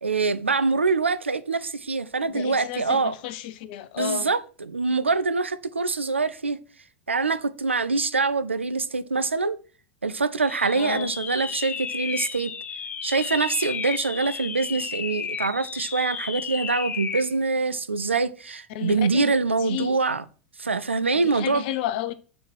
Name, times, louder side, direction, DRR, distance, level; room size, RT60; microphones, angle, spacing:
voice 1, 0.0-3.1 4.0-6.6 7.1-9.6 10.0-12.5 13.0-20.2 20.6-21.6, right 4 dB, 85° right, 0.6 m, -24 dB
voice 2, 2.3-4.3 10.7-11.1 18.7-19.3 19.6-20.0 21.3-22.1, left 12 dB, 55° left, 0.9 m, -32 dB
sound 1, 10.4-17.3, left 7 dB, 25° left, 0.6 m, -33 dB
7.1 x 4.7 x 6.3 m
figure-of-eight pair, 85°, 6 cm